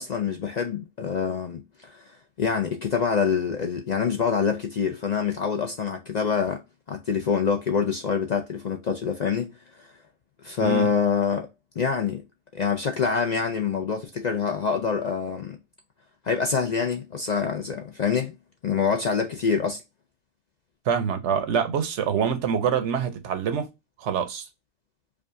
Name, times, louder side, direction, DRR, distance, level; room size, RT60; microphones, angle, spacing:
voice 1, 0.0-2.0 2.4-6.6 6.9-9.5 9.8-9.9 10.4-11.5 11.8-12.2 12.5-15.6 16.2-18.3 18.6-19.8, left 6 dB, 65° left, 0.4 m, -26 dB
voice 2, 10.6-10.9 20.9-23.7 24.0-24.5, right 7 dB, 65° right, 0.8 m, -25 dB
5.0 x 2.4 x 2.5 m
omnidirectional pair, 1.4 m